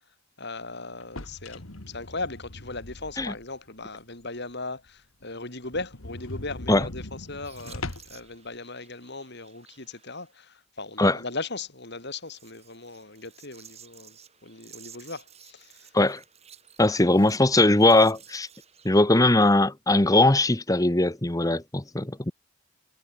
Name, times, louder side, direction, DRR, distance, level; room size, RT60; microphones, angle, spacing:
voice 1, 0.4-14.2 14.4-15.9, left 3 dB, 55° left, 4.6 m, -38 dB
sound 1, 1.0-3.6 4.0-4.1 4.5-4.6 4.9-5.0 5.2-5.3 5.6-8.3, left 2 dB, 80° left, 2.5 m, -40 dB
sound 2, 7.4-10.4 12.0-18.9, right 8 dB, 30° right, 7.6 m, -53 dB
voice 2, 16.8-18.5 18.8-22.3, left 2 dB, 15° left, 1.1 m, -20 dB
head